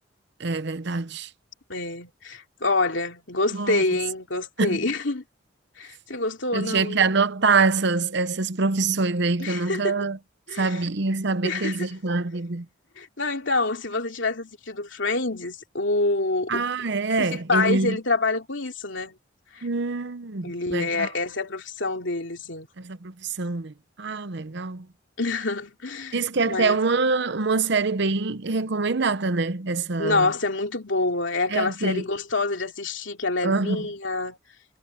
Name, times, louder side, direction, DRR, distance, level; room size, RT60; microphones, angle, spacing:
voice 1, 0.4-1.3 3.5-3.8 4.6-4.8 6.5-10.2 10.6-12.7 16.5-18.0 19.6-21.1 22.8-24.9 26.1-30.3 31.5-32.0 33.4-33.8, right 4 dB, 60° right, 0.8 m, -25 dB
voice 2, 1.7-5.2 5.8-7.0 9.4-9.9 10.5-10.9 11.4-11.9 13.0-16.6 17.2-19.1 19.5-19.7 20.4-22.7 25.2-26.8 30.0-34.4, left 3 dB, 65° left, 3.0 m, -27 dB
head